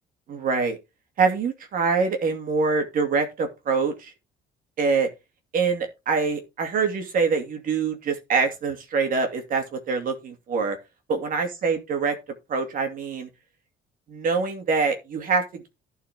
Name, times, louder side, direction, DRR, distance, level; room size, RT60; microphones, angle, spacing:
voice 1, 0.3-0.8 1.2-4.1 4.8-5.1 5.5-10.8 11.1-12.1 12.5-13.3 14.1-15.7, right 4 dB, 55° right, 2.5 m, -25 dB
11.5 x 4.8 x 4.5 m
cardioid pair, 110°, 17 cm